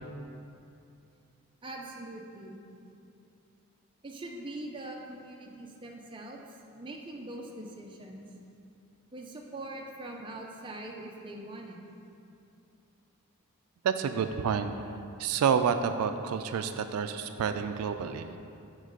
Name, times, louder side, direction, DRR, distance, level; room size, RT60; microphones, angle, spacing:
voice 1, 1.6-2.6 4.0-8.2 9.1-11.8, right 1 dB, 20° right, 0 dB, 0.5 m, -42 dB
voice 2, 13.8-14.7 15.2-18.4, right 7 dB, 85° right, 9 dB, 0.3 m, -29 dB
7.5 x 3.1 x 5.2 m, 2.6 s
head